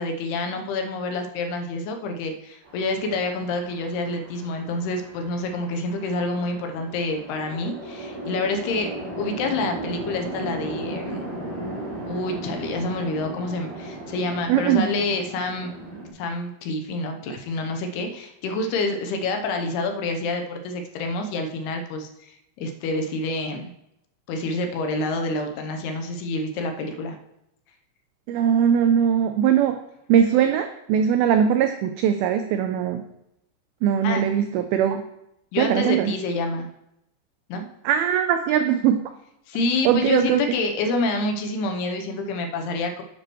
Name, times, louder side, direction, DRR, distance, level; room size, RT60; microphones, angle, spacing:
voice 1, 0.0-8.9 9.2-11.3 12.1-15.7 16.1-23.7 24.3-27.2 34.0-34.3 35.5-36.7 37.5-37.6 39.5-43.0, left 2 dB, 80° left, 4 dB, 2.7 m, -27 dB
Chatter / Traffic noise roadway noise / Train, 2.7-16.1, right 1 dB, 60° right, 4.2 m, -36 dB
voice 2, 14.5-14.9 28.3-29.8 30.1-33.0 33.8-35.0 35.6-36.1 37.9-39.0 39.9-40.4, right 9 dB, 85° right, 7 dB, 2.1 m, -20 dB
9.8 x 9.3 x 3.1 m, 0.83 s
omnidirectional pair, 4.9 m